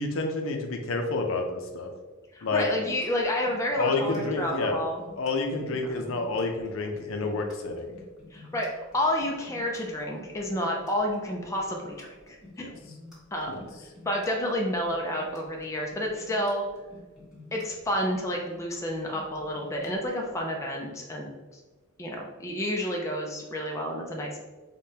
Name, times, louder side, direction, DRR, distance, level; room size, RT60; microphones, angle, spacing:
voice 1, 0.0-1.9 2.4-2.6 3.8-4.8 5.2-7.9 12.6-12.7 13.5-13.6, left 3 dB, 70° left, 3 dB, 0.5 m, -29 dB
voice 2, 2.3-5.0 5.8-6.2 8.3-12.7 13.3-13.6 14.1-16.6 17.5-21.6 22.0-24.4, equal, 15° left, 0 dB, 0.3 m, -30 dB
sound 1, 2.4-20.3, left 2 dB, 5° right, 1.5 m, -50 dB
4.9 x 2.2 x 2.7 m, 1.3 s
head